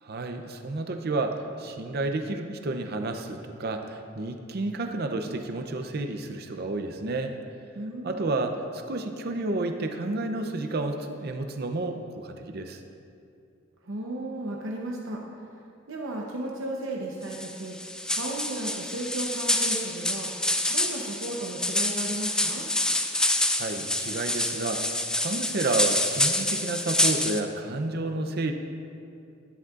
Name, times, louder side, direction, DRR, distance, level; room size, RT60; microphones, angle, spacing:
voice 1, 0.0-7.4 8.0-12.8 23.5-28.5, right 2 dB, 55° right, 6 dB, 0.6 m, -31 dB
voice 2, 7.7-8.5 13.8-15.2 15.9-17.8 18.1-20.3 20.7-22.7, right 2 dB, 80° right, -1 dB, 0.9 m, -34 dB
sound 1, 17.3-27.4, left 1 dB, 5° left, 0.4 m, -27 dB
11.5 x 10.5 x 2.5 m, 2.5 s
head